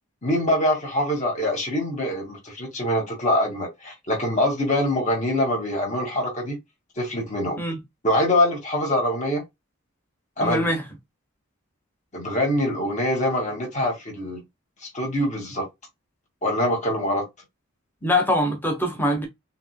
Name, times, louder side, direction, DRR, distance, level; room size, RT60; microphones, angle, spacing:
voice 1, 0.2-6.6 7.0-7.6 8.0-9.4 10.4-10.7 12.1-14.4 14.8-15.7 16.4-17.2, left 1 dB, 35° left, 2.1 m, -24 dB
voice 2, 10.4-10.8 18.0-19.3, left 1 dB, 10° left, 1.0 m, -23 dB
5.7 x 2.9 x 2.2 m
head